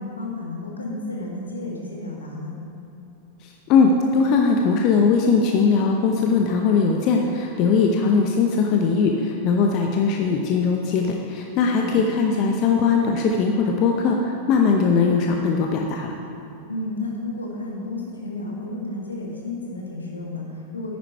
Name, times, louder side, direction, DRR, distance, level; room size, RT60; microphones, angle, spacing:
voice 1, 0.0-2.5 11.8-12.1 16.7-21.0, left 2 dB, 75° left, -2 dB, 1.9 m, -32 dB
voice 2, 3.4-16.1, left 5 dB, 40° left, 2 dB, 0.8 m, -20 dB
9.8 x 9.5 x 4.6 m, 2.7 s
figure-of-eight pair, 90°, 0 cm